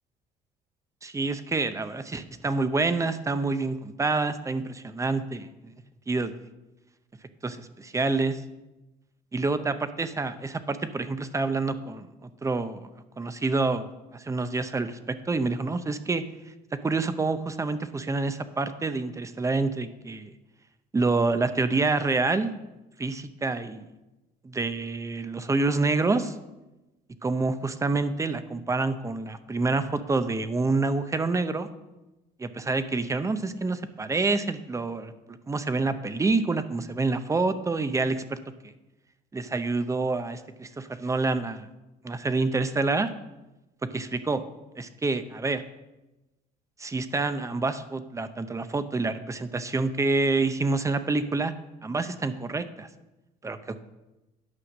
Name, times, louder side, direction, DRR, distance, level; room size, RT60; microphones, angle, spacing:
voice 1, 1.0-5.5 6.1-6.3 7.4-8.4 9.3-12.9 13.2-13.9 14.1-16.2 16.8-20.3 20.9-22.5 23.0-23.9 24.4-26.4 27.2-31.7 32.4-38.4 38.6-38.7 39.3-41.7 42.0-43.1 43.9-44.4 44.8-45.6 46.8-51.5 51.8-52.9 53.4-53.8, right 3 dB, 20° right, 11 dB, 0.7 m, -27 dB
9.7 x 5.7 x 6.3 m, 1.0 s
cardioid pair, 110°, 17 cm